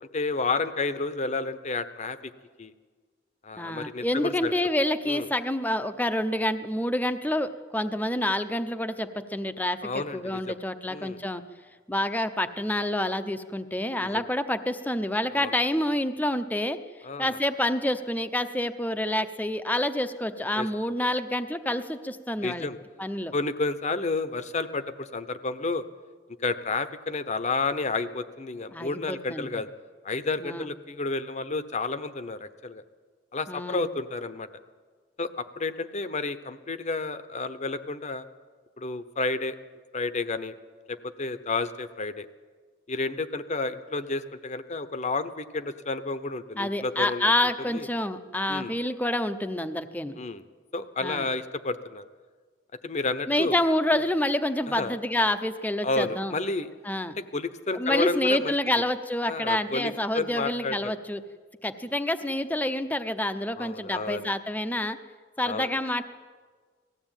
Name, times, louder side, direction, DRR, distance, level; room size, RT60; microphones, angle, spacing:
voice 1, 0.1-2.3 2.6-2.7 3.4-4.5 5.1-5.3 9.8-10.6 10.9-11.2 14.0-14.1 15.3-15.5 17.0-17.4 20.6-20.7 22.4-22.8 23.3-25.8 26.4-29.7 30.0-32.8 33.3-34.5 35.2-38.2 38.8-39.6 39.9-40.5 40.9-42.3 42.9-47.3 47.7-47.9 48.5-48.7 50.2-50.4 50.7-52.0 52.8-53.6 53.9-54.0 54.7-55.0 55.8-56.7 57.2-58.5 59.3-60.9 63.6-64.2 65.4-65.7, left 3 dB, 40° left, 12 dB, 0.9 m, -31 dB
voice 2, 3.6-9.8 10.1-11.4 11.9-16.8 17.2-22.7 23.0-23.3 28.7-29.6 30.4-30.7 33.5-33.9 46.6-50.2 51.0-51.3 53.3-56.3 56.8-57.2 57.7-61.2 61.6-65.0 65.4-66.0, left 1 dB, 10° left, 9 dB, 0.8 m, -28 dB
19.0 x 15.0 x 9.0 m, 1.5 s
head